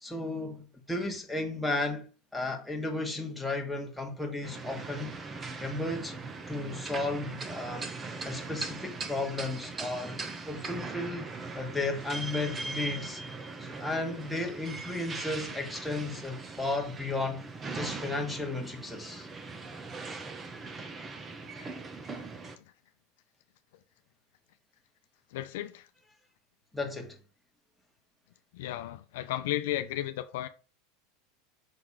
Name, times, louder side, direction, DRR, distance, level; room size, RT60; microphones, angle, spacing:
voice 1, 0.0-5.2 5.6-6.1 6.5-7.9 8.2-10.2 10.4-11.3 11.5-13.2 13.6-17.4 17.7-19.3 26.7-27.2, left 2 dB, 5° left, 1.6 m, -34 dB
sound 1, 4.4-22.6, right 3 dB, 25° right, 1.0 m, -40 dB
voice 2, 25.3-25.9 28.5-30.5, left 14 dB, 75° left, 0.5 m, -34 dB
5.7 x 3.8 x 4.8 m
supercardioid pair, 110°, 0 cm